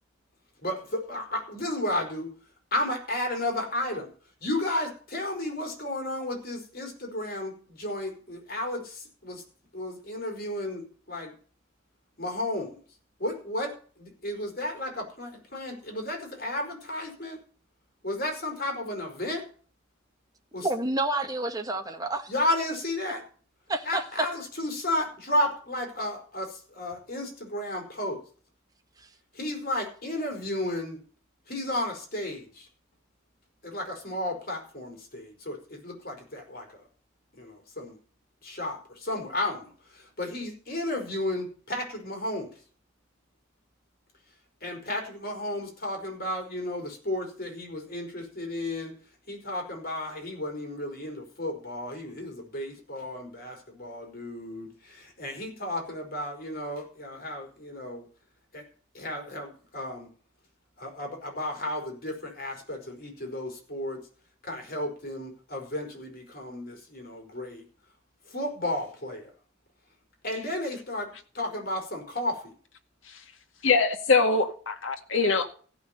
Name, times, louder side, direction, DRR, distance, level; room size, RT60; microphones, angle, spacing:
voice 1, 0.6-2.3 2.7-4.1 4.4-9.4 9.7-11.3 12.2-12.8 13.2-17.4 18.0-19.4 20.5-20.7 22.3-23.2 23.8-28.2 29.3-31.0 31.5-32.7 33.6-36.7 37.4-38.0 38.4-42.5 44.6-48.9 49.3-58.1 58.5-58.6 58.9-60.1 60.8-64.0 64.4-67.6 68.3-69.3 70.2-72.5, left 1 dB, 50° left, 4.7 m, -33 dB
voice 2, 20.6-22.3 23.7-24.0 29.0-29.1, right 2 dB, 20° right, 1.7 m, -29 dB
voice 3, 73.6-75.5, left 4 dB, 70° left, 2.1 m, -23 dB
15.5 x 6.1 x 9.0 m
head